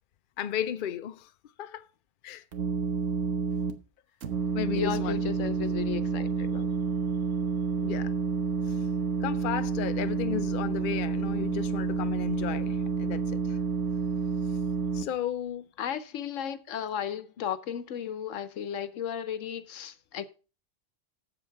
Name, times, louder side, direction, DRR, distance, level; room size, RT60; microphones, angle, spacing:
voice 1, 0.4-1.3 1.6-1.9 2.2-2.4 4.5-5.2 7.4-7.5 7.8-8.1 8.6-8.9 9.2-13.6 14.5-14.6 14.9-15.7, left 10 dB, 55° left, 0.7 m, -34 dB
sound 1, 2.5-3.7 4.2-15.0, right 5 dB, 85° right, 1.5 m, -29 dB
voice 2, 4.8-6.7 15.8-20.3, left 9 dB, 85° left, 1.2 m, -34 dB
7.8 x 7.8 x 5.7 m
omnidirectional pair, 1.3 m